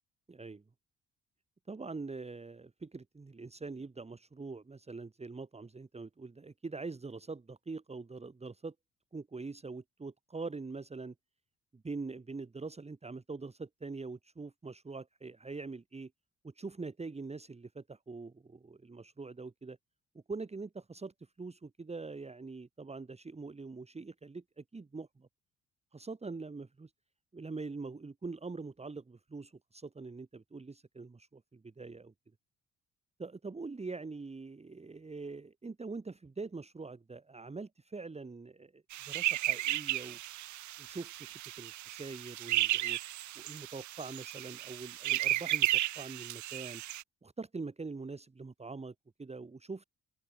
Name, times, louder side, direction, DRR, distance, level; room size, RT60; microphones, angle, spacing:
voice 1, 0.3-0.6 1.7-8.7 9.1-11.1 11.7-16.1 16.4-19.8 20.1-25.3 25.9-26.9 27.3-32.1 33.2-40.2 40.8-43.0 43.4-46.8 47.2-49.9, right 3 dB, 20° right, 1.9 m, -44 dB
sound 1, 38.9-47.0, right 15 dB, 70° right, 0.7 m, -34 dB
open air
cardioid pair, 90°, 30 cm